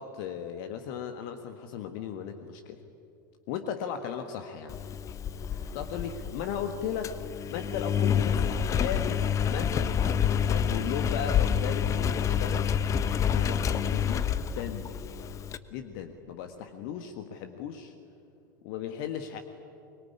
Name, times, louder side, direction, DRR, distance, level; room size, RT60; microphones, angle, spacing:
voice 1, 0.0-2.8 3.5-4.8 5.5-9.2 9.5-12.7 13.3-14.3 14.5-14.9 15.7-17.9 18.6-19.4, left 8 dB, 50° left, 7 dB, 1.6 m, -36 dB
Engine, 4.7-15.6, left 8 dB, 30° left, 1.1 m, -28 dB
24.0 x 23.0 x 9.9 m, 2.6 s
figure-of-eight pair, 80°, 11 cm